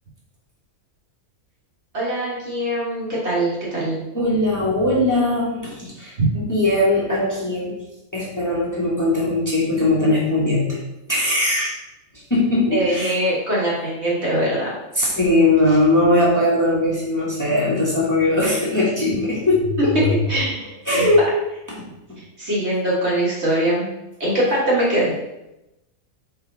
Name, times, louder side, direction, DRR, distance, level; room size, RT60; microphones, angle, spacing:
voice 1, 1.9-4.0 6.2-6.3 12.7-14.7 20.3-21.1 22.4-23.9 24.2-25.1, right 1 dB, 50° right, -6 dB, 2.1 m, -22 dB
voice 2, 4.1-7.7 8.1-10.8 11.1-11.7 12.1-13.2 14.9-20.1 20.8-21.2 21.7-21.8, left 1 dB, 15° left, -6 dB, 1.5 m, -20 dB
5.5 x 4.7 x 4.0 m, 0.92 s
omnidirectional pair, 1.5 m